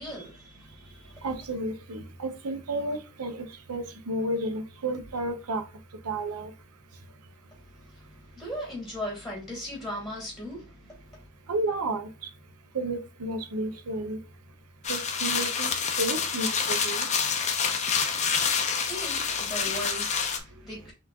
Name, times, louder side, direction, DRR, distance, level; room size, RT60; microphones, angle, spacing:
voice 1, 0.0-1.3 7.5-11.2 18.8-20.9, equal, ahead, 2.3 m, -38 dB
voice 2, 1.2-5.6 6.0-6.5 11.5-12.1 12.7-14.2 14.9-15.7 16.0-17.1, right 2 dB, 85° right, 0.7 m, -32 dB
sound 1, 14.8-20.4, left 6 dB, 30° left, 0.6 m, -27 dB
5.7 x 3.1 x 2.3 m
head